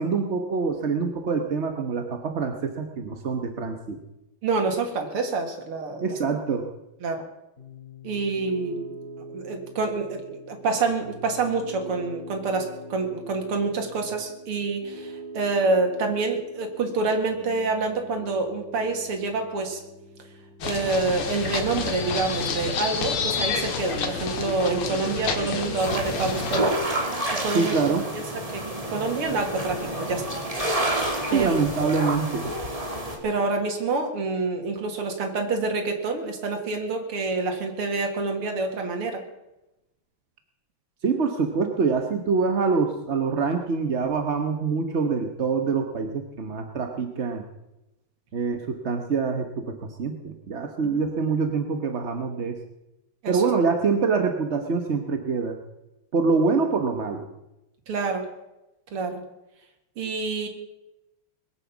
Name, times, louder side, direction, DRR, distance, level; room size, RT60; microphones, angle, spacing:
voice 1, 0.0-4.0 6.0-6.7 27.5-28.1 31.3-32.5 41.0-47.4 48.3-52.6 53.3-55.6 56.1-57.2, right 4 dB, 45° right, 5 dB, 0.9 m, -25 dB
voice 2, 4.4-6.1 7.0-7.2 8.0-8.8 9.3-19.8 20.6-26.8 27.3-27.8 28.1-28.2 28.5-30.2 31.3-31.6 33.2-39.2 50.8-51.0 53.2-53.4 57.9-58.3 58.9-59.2 60.0-60.5, right 3 dB, 85° right, 4 dB, 2.9 m, -27 dB
Piano, 7.6-20.7, right 1 dB, 25° left, 4.9 m, -43 dB
sound 1, 20.6-26.7, left 5 dB, 85° left, 2.6 m, -29 dB
sound 2, 25.8-33.2, right 1 dB, 15° right, 2.6 m, -29 dB
21.0 x 8.9 x 7.1 m, 0.94 s
omnidirectional pair, 2.4 m